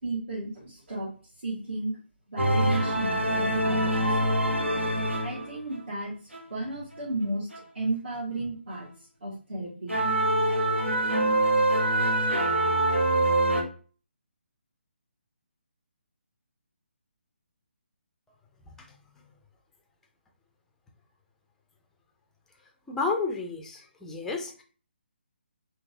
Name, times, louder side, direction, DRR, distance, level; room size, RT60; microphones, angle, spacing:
voice 1, 0.0-1.1 1.4-2.0 2.3-4.2 5.2-6.2 6.5-7.5 7.7-10.0, right 2 dB, 60° right, -6 dB, 1.7 m, -33 dB
sound 1, 2.4-5.8 6.3-6.4 7.5-7.6 9.9-13.6, right 1 dB, 80° right, 0.9 m, -24 dB
voice 2, 22.9-24.6, left 4 dB, 5° left, 2 dB, 0.4 m, -31 dB
3.6 x 2.7 x 2.6 m, 0.39 s
figure-of-eight pair, 145°, 6 cm